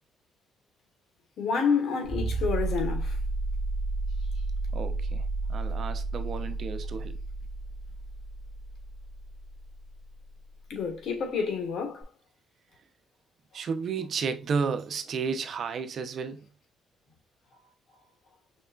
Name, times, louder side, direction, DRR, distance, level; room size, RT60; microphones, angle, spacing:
voice 1, 1.4-3.2 10.7-12.0, left 5 dB, 70° left, 1.4 m, -28 dB
sound 1, 2.0-10.5 12.0-12.1, right 2 dB, ahead, 1.5 m, -32 dB
voice 2, 4.7-7.2 13.5-16.5, right 5 dB, 55° right, 0.7 m, -32 dB
5.3 x 3.5 x 2.4 m
cardioid pair, 90°, 0 cm